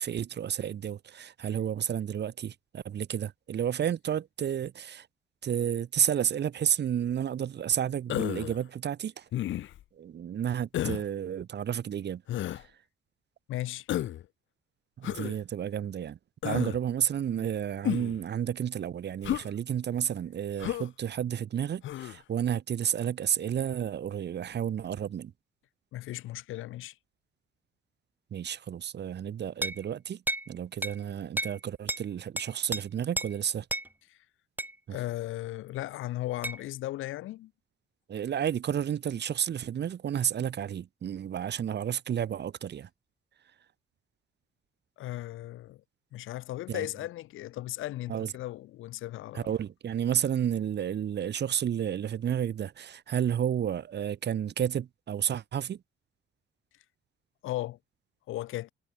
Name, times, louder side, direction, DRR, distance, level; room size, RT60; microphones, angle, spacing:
voice 1, 0.0-5.1 5.4-9.3 10.0-12.2 12.5-12.7 15.0-16.2 16.4-25.3 28.3-33.7 34.9-35.0 38.1-42.9 46.7-46.9 48.1-48.3 49.3-55.8, right 9 dB, 60° right, 2.4 m, -31 dB
Human voice, 8.1-8.6 9.3-9.8 10.7-11.1 12.3-12.6 13.9-14.2 15.0-15.4 16.4-16.8 17.8-18.2 19.2-19.5 20.6-20.9 21.8-22.2, left 13 dB, 75° left, 1.3 m, -32 dB
voice 2, 13.5-13.9 25.9-27.0 34.1-34.2 34.9-37.5 45.0-45.8 46.1-49.5 57.4-57.8 58.3-58.7, left 15 dB, 90° left, 6.2 m, -36 dB
sound 1, 29.6-29.8 30.3-30.5 30.8-31.0 31.4-31.6 31.9-32.0 32.4-32.8 33.2-33.3 33.7-33.9 34.6-34.8 36.4-36.6, right 1 dB, 10° right, 3.0 m, -32 dB
cardioid pair, 90°, 20 cm